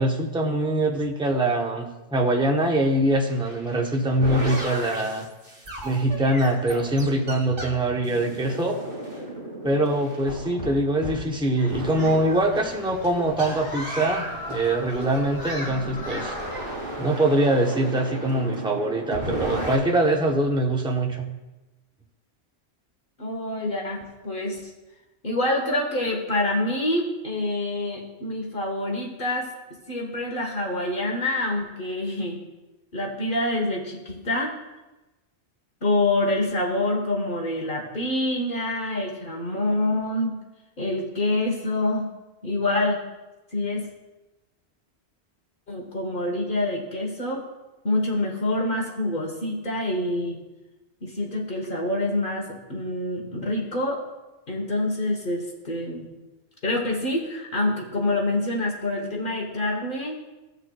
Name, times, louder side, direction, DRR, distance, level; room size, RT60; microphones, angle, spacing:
voice 1, 0.0-5.3 5.8-8.8 9.6-16.4 17.0-21.3, right 1 dB, 5° right, 1 dB, 0.7 m, -23 dB
sound 1, 3.3-12.5 13.4-14.5 15.7-19.8, right 1 dB, 50° right, 2.4 m, -34 dB
Human group actions, 11.6-17.0, left 1 dB, 35° left, 3.3 m, -37 dB
voice 2, 23.2-24.7 25.2-29.5 29.9-32.4 32.9-34.6 35.8-40.3 40.8-42.1 42.4-43.0 43.5-43.9 45.7-47.4 47.8-50.4 51.0-54.0 54.5-56.1 56.6-60.2, left 1 dB, 50° left, 0 dB, 1.3 m, -26 dB
16.5 x 6.5 x 2.3 m, 1.1 s
omnidirectional pair, 1.1 m